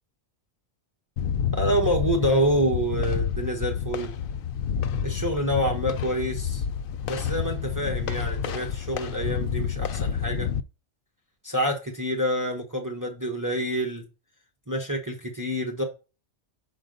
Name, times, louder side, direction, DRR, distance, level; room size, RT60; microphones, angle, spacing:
sound 1, 1.2-10.6, left 8 dB, 60° left, 0.6 m, -29 dB
voice 1, 1.5-4.2 5.0-6.6 7.1-10.5 11.4-14.0 14.7-15.8, equal, 15° right, 1.1 m, -27 dB
6.3 x 5.2 x 3.9 m
omnidirectional pair, 1.3 m